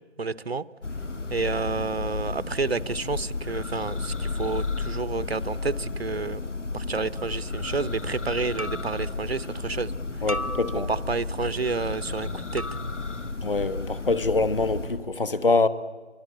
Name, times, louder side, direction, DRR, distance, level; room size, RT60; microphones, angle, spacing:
voice 1, 0.2-0.6 1.3-6.4 6.7-9.9 10.7-12.6, right 4 dB, 60° right, 0.8 m, -30 dB
Church bell, 0.8-15.1, left 3 dB, 80° left, 2.0 m, -33 dB
sound 1, 7.2-7.4 8.6-9.1 10.3-11.2 12.6-13.2, equal, 30° right, 0.8 m, -36 dB
voice 2, 10.2-10.9 13.4-15.7, left 3 dB, 50° left, 1.2 m, -24 dB
24.0 x 24.0 x 8.5 m
figure-of-eight pair, 175°, 36 cm